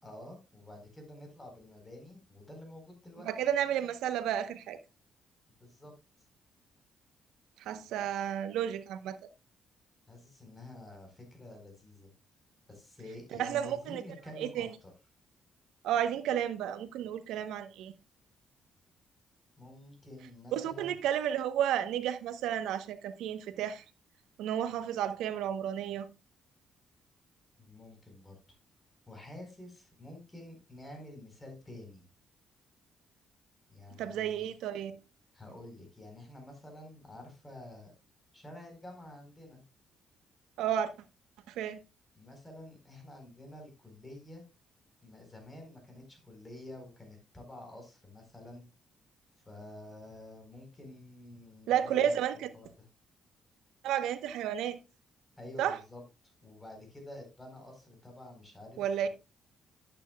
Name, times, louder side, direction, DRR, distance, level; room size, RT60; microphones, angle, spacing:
voice 1, 0.0-3.3 5.6-5.9 10.1-12.1 12.7-14.9 19.6-21.0 27.6-28.6 29.1-32.0 33.7-34.5 35.3-37.9 38.3-39.6 42.1-44.4 45.0-48.6 49.5-52.2 52.5-52.9 55.4-56.0 56.4-59.1, left 1 dB, 20° left, 4.3 m, -49 dB
voice 2, 3.3-4.8 7.7-9.2 13.4-14.0 14.4-14.7 15.8-17.9 20.5-23.8 24.4-26.1 34.0-35.0 40.6-40.9 41.6-41.8 51.7-52.3 53.8-54.8 55.6-55.8 58.8-59.1, right 10 dB, 90° right, 0.9 m, -32 dB
11.0 x 8.8 x 2.3 m
cardioid pair, 90°, 0 cm